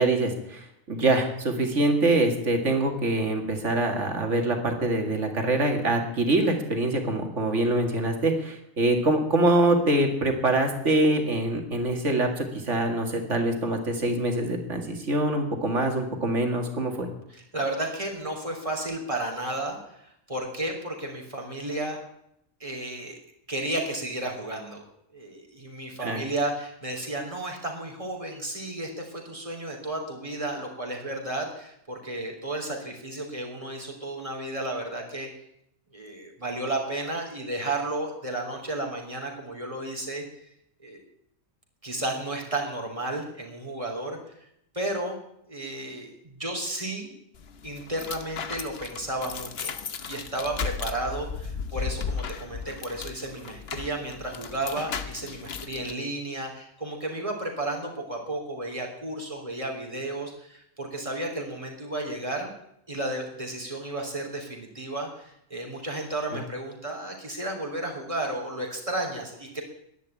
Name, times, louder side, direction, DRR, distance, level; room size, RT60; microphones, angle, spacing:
voice 1, 0.0-17.1 26.0-26.2 66.3-66.4, right 2 dB, 60° right, 4 dB, 2.5 m, -24 dB
voice 2, 17.3-22.0 22.6-23.2 23.5-24.8 25.1-35.3 35.9-40.2 40.8-41.0 41.8-44.4 44.7-45.2 45.5-47.1 47.6-49.8 50.1-62.5 62.9-69.6, right 1 dB, 25° right, 0 dB, 3.3 m, -33 dB
sound 1, 47.3-55.9, left 6 dB, 50° left, 1.1 m, -35 dB
11.0 x 11.0 x 8.5 m, 0.75 s
omnidirectional pair, 1.4 m